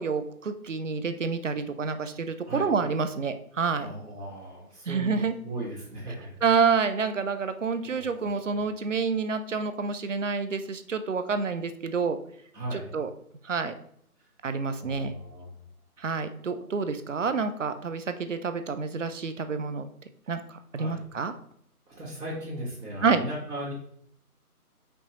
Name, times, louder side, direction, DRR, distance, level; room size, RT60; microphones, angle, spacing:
voice 1, 0.0-3.9 4.9-5.3 6.4-12.2 12.7-13.1 13.4-13.7 14.4-15.1 16.0-19.9 20.3-21.3 23.0-23.2, right 5 dB, 55° right, 10 dB, 0.5 m, -28 dB
voice 2, 3.8-6.4 7.8-8.6 12.5-12.9 14.2-14.3 14.8-15.6 20.2-20.3 20.8-21.0 21.9-23.7, right 1 dB, 75° right, -7 dB, 1.7 m, -37 dB
5.3 x 2.8 x 3.0 m, 0.65 s
figure-of-eight pair, 165°, 46 cm